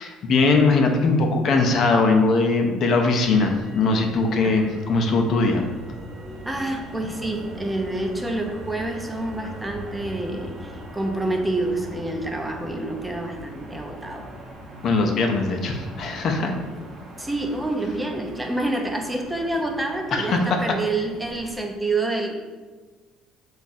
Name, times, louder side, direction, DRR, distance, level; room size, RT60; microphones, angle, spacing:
voice 1, 0.0-5.6 14.8-16.5 20.1-20.6, left 3 dB, 55° left, 3 dB, 0.5 m, -20 dB
Motor vehicle (road), 3.1-21.6, equal, 40° right, 0.8 m, -41 dB
voice 2, 6.5-14.3 17.2-22.4, right 2 dB, 10° right, 3 dB, 0.5 m, -28 dB
3.4 x 2.4 x 4.0 m, 1.3 s
supercardioid pair, 90°, 0 cm